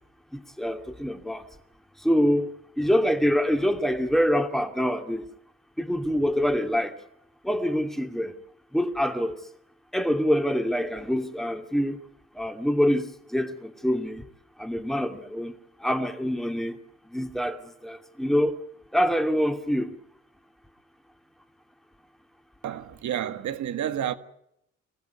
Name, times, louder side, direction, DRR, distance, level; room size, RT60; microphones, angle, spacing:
voice 1, 0.3-1.5 2.0-5.3 5.8-7.0 7.4-8.3 8.7-9.4 9.9-12.0 12.3-14.2 14.6-16.8 17.0-18.6 18.9-19.9, equal, ahead, 2.6 m, -25 dB
voice 2, 22.6-24.1, right 10 dB, 70° right, 1.8 m, -30 dB
25.5 x 15.5 x 9.5 m
cardioid pair, 90°, 30 cm